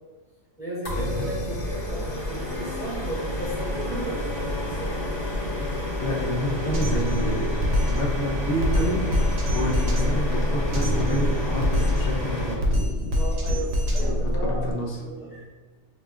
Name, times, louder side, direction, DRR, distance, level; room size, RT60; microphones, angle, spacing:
voice 1, 0.6-4.9 13.1-14.6 14.9-15.4, right 1 dB, 5° right, -9 dB, 1.2 m, -35 dB
sound 1, 0.8-12.5, left 1 dB, 25° left, 0.8 m, -29 dB
voice 2, 6.0-7.5 7.9-9.1 9.5-12.8 14.4-15.0, equal, 55° left, -1 dB, 0.7 m, -29 dB
Drum kit, 6.7-14.7, left 1 dB, 80° right, 1.1 m, -25 dB
4.8 x 2.3 x 2.4 m, 1.3 s
omnidirectional pair, 1.4 m